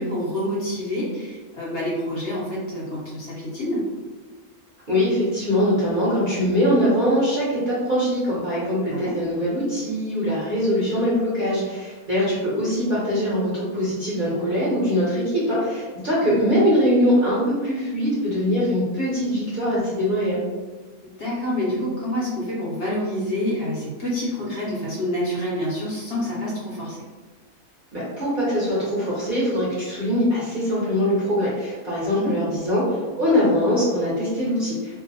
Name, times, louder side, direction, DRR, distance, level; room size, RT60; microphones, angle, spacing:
voice 1, 0.0-3.8 8.9-9.1 16.2-16.4 21.2-27.0 32.1-32.3, left 1 dB, 60° left, -7 dB, 0.8 m, -27 dB
voice 2, 4.9-20.4 27.9-35.0, equal, 45° right, -9 dB, 0.7 m, -22 dB
2.6 x 2.1 x 2.5 m, 1.3 s
omnidirectional pair, 1.6 m